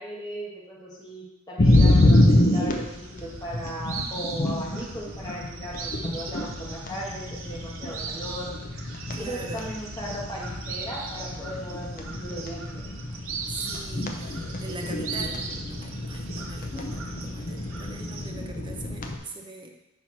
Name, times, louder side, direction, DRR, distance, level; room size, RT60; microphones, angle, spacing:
voice 1, 0.0-8.6 9.2-12.8, equal, 20° left, -4 dB, 1.4 m, -37 dB
sound 1, 1.6-19.2, left 1 dB, 40° left, 0.6 m, -27 dB
sound 2, 1.6-18.3, right 5 dB, 75° right, 0.8 m, -40 dB
voice 2, 9.1-9.7 13.5-15.4 15.7-19.7, right 3 dB, 25° right, 2 dB, 0.7 m, -41 dB
4.4 x 4.4 x 5.8 m, 0.90 s
head